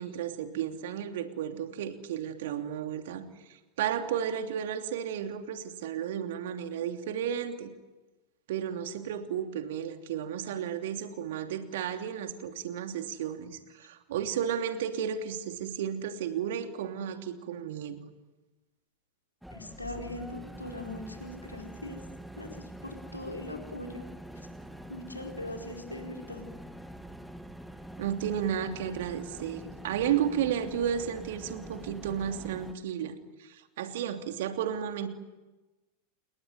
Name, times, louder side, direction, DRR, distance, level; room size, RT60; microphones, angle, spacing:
voice 1, 0.0-7.7 8.5-18.0 28.0-35.1, right 9 dB, 55° right, 6 dB, 2.9 m, -33 dB
sound 1, 19.4-32.7, right 1 dB, ahead, 1.8 m, -45 dB
voice 2, 19.5-22.0 22.4-24.0 24.9-26.5, left 1 dB, 85° left, 2 dB, 4.5 m, -40 dB
29.5 x 20.5 x 9.5 m, 1.1 s
figure-of-eight pair, 90°, 0 cm